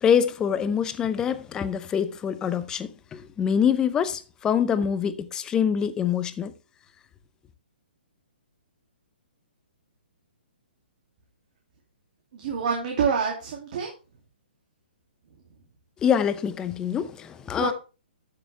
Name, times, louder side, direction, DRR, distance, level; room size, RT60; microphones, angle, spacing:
voice 1, 0.0-6.5 16.0-17.7, left 8 dB, 10° left, 0.7 m, -25 dB
voice 2, 12.3-13.9 17.6-17.7, right 6 dB, 45° right, 2.5 m, -26 dB
13.5 x 6.8 x 3.3 m
hypercardioid pair, 155°, 6 cm